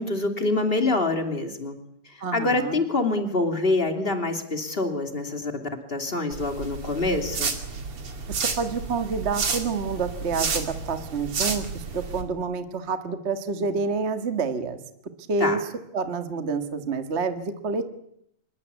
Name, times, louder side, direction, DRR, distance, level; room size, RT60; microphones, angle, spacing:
voice 1, 0.0-1.8 2.1-7.5 15.4-15.6, left 2 dB, 15° left, 5 dB, 2.4 m, -26 dB
voice 2, 2.2-2.8 8.4-14.8 15.3-15.6 15.9-17.8, right 4 dB, 60° right, 8 dB, 0.6 m, -28 dB
sound 1, 6.3-12.2, right 5 dB, 40° right, 3.2 m, -31 dB
25.5 x 22.5 x 8.3 m, 0.74 s
omnidirectional pair, 4.3 m